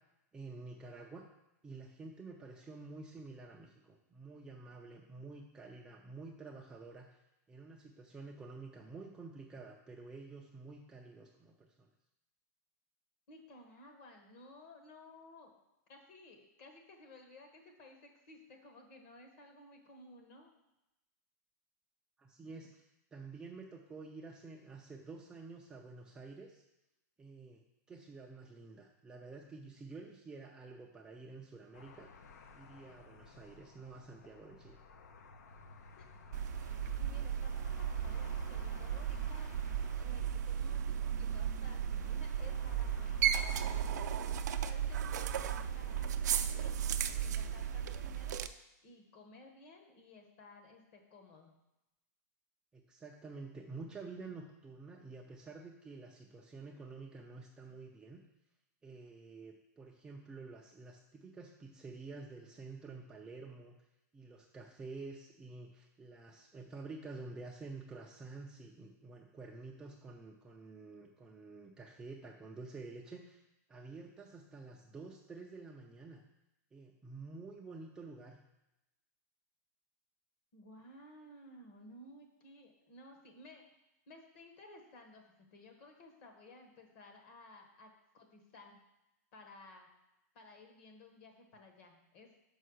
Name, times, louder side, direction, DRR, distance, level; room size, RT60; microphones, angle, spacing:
voice 1, 0.3-1.2 1.6-7.2 7.5-11.9 22.2-26.6 27.2-27.6 27.9-32.1 32.5-34.8 52.7-58.2 58.8-63.8 64.1-73.4 73.7-76.2 76.7-78.4, right 3 dB, 10° right, -1 dB, 0.4 m, -49 dB
voice 2, 13.3-15.5 15.9-20.5 35.9-36.1 36.4-39.6 40.0-44.1 44.6-46.8 47.2-48.4 48.8-51.5 80.5-83.6 84.1-88.8 89.3-89.9 90.3-92.3, left 2 dB, 40° left, 3 dB, 1.3 m, -56 dB
sound 1, 31.7-48.0, left 4 dB, 70° left, 0.8 m, -55 dB
sound 2, 36.3-48.5, right 9 dB, 85° right, 0.5 m, -35 dB
5.5 x 5.5 x 6.3 m, 0.93 s
supercardioid pair, 175°, 9 cm